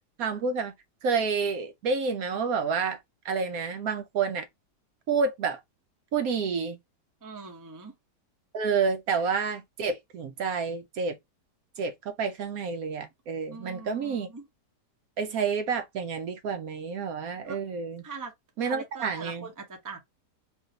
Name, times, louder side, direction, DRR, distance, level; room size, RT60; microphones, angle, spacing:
voice 1, 0.2-0.7 1.0-3.0 3.2-4.4 5.1-5.6 6.1-6.8 8.5-11.2 11.8-14.3 15.2-18.0 18.6-19.4, right 5 dB, 70° right, 0.9 m, -29 dB
voice 2, 7.2-7.9 13.5-14.4 17.4-17.6 18.0-18.3 18.6-20.0, right 4 dB, 20° right, 0.5 m, -42 dB
3.5 x 2.6 x 3.8 m
omnidirectional pair, 1.8 m